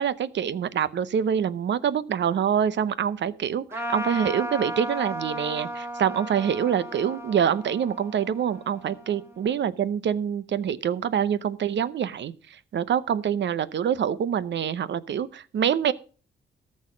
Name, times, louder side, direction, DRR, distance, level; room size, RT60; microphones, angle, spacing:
voice 1, 0.0-15.9, right 8 dB, 70° right, 17 dB, 0.8 m, -26 dB
Trumpet, 3.7-9.5, equal, 15° right, 2.4 m, -35 dB
14.0 x 6.4 x 6.2 m, 0.39 s
cardioid pair, 75°, 19 cm